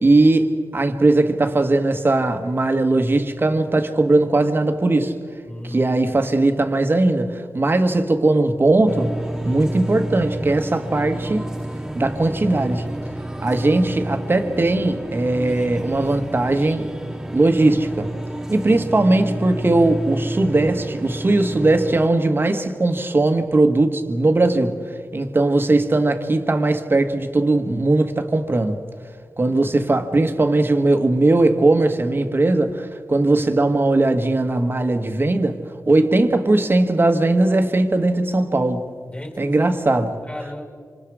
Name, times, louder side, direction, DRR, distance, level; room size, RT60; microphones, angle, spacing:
voice 1, 0.0-5.1 5.7-9.1 9.4-11.5 11.9-12.8 13.4-16.9 17.3-18.1 18.5-24.8 25.1-28.8 29.4-35.6 35.9-38.8 39.4-40.1, right 2 dB, 40° right, 1.8 m, -19 dB
voice 2, 5.5-6.2 39.0-40.6, left 1 dB, 25° left, 5.9 m, -34 dB
sound 1, 8.9-22.1, right 1 dB, 10° right, 1.4 m, -30 dB
27.0 x 26.0 x 5.0 m
cardioid pair, 65°, 6 cm